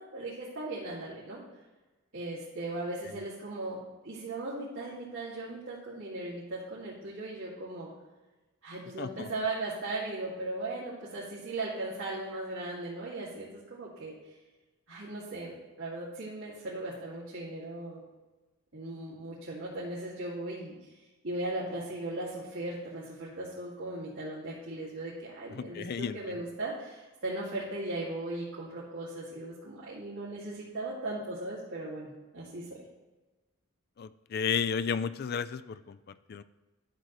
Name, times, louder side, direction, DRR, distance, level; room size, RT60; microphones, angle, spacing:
voice 1, 0.0-1.4 2.1-7.9 8.6-14.1 14.9-18.0 18.7-20.7 21.2-32.8, right 2 dB, 75° right, -8 dB, 2.3 m, -38 dB
voice 2, 9.0-9.3 25.5-26.3 34.0-36.4, left 6 dB, 50° left, 13 dB, 0.4 m, -33 dB
12.0 x 6.6 x 3.1 m, 1.2 s
head